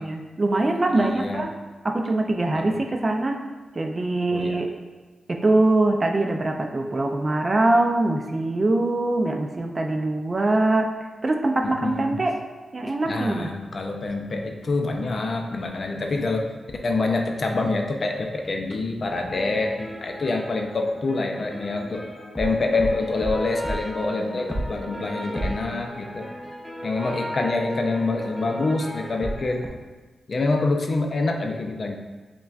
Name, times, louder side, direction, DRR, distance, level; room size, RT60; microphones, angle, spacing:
voice 1, 0.0-1.5 1.8-3.4 3.7-4.7 5.3-10.9 11.2-12.4 12.7-13.5, right 2 dB, 30° right, 3 dB, 0.3 m, -23 dB
voice 2, 0.9-1.4 2.5-2.7 4.3-4.6 11.6-12.2 13.0-16.5 16.8-22.0 22.4-26.3 26.8-29.7 30.3-32.0, left 3 dB, 45° left, 3 dB, 0.4 m, -26 dB
sound 1, 19.0-29.7, equal, 5° left, 0.7 m, -34 dB
5.6 x 2.2 x 2.4 m, 1.3 s
wide cardioid pair, 105°, 0 cm